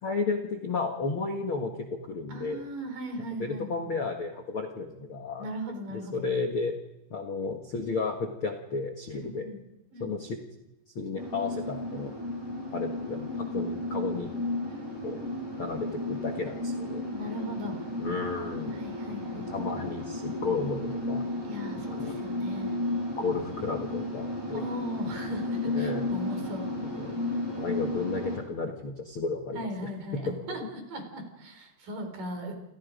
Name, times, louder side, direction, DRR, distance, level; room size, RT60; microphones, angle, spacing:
voice 1, 0.0-2.6 3.4-5.4 5.9-6.8 7.1-9.5 10.0-10.4 10.9-12.1 12.7-14.3 15.0-15.2 15.6-17.1 18.0-18.8 19.3-21.2 21.8-22.2 23.2-24.6 25.7-26.1 27.0-27.1 27.4-29.7 30.1-30.7, left 4 dB, 50° left, 4 dB, 1.6 m, -33 dB
voice 2, 2.3-3.7 5.4-6.3 9.1-9.6 9.9-10.2 14.7-15.3 17.1-17.8 18.7-19.7 21.4-22.8 24.5-26.6 29.5-32.5, equal, 55° right, 5 dB, 5.7 m, -38 dB
sound 1, 11.2-28.4, left 2 dB, 5° right, 7.4 m, -33 dB
29.0 x 28.0 x 5.2 m, 0.93 s
omnidirectional pair, 4.8 m